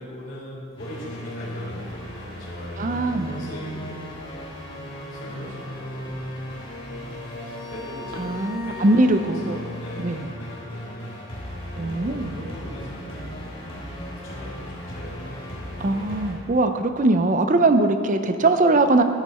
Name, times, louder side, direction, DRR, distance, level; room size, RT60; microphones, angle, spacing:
voice 1, 0.0-6.3 6.8-13.4 13.6-15.7 16.1-16.3 18.7-18.9, equal, 45° left, -11 dB, 2.7 m, -41 dB
sound 1, 0.8-16.3, left 1 dB, 25° left, 1.9 m, -36 dB
voice 2, 2.8-3.5 8.2-9.6 10.0-10.3 11.8-12.4 15.8-19.0, right 2 dB, 35° right, 8 dB, 0.5 m, -21 dB
11.5 x 9.2 x 4.3 m, 2.3 s
head